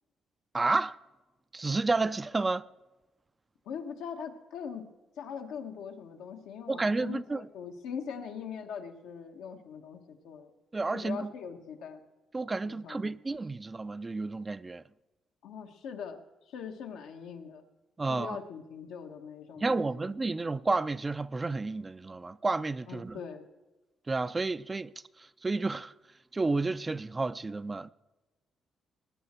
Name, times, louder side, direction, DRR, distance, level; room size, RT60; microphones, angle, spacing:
voice 1, 0.5-1.0 1.5-2.6 6.7-7.4 10.7-11.3 12.3-14.8 18.0-18.4 19.6-23.2 24.1-24.9 25.2-25.9 26.3-27.9, right 3 dB, 25° right, 0.4 m, -31 dB
voice 2, 3.6-4.9 5.2-10.5 10.9-12.0 12.6-13.2 15.4-16.2 16.5-17.6 18.1-20.4 22.9-23.5, left 7 dB, 90° left, 1.3 m, -41 dB
20.0 x 9.8 x 4.4 m
cardioid pair, 90°, 0 cm